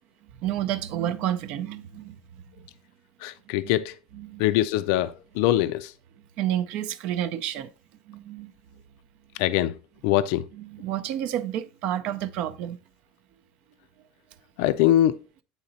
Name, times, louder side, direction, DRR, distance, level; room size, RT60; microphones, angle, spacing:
voice 1, 0.2-2.2 2.4-2.7 3.6-3.7 4.1-4.4 6.4-7.7 8.1-8.5 10.5-12.8, right 11 dB, 50° right, 0.6 m, -30 dB
voice 2, 3.2-4.0 4.4-5.9 9.4-9.8 10.0-10.5 14.6-15.2, left 13 dB, 65° left, 0.4 m, -23 dB
8.9 x 4.0 x 4.0 m
cardioid pair, 170°, 3 cm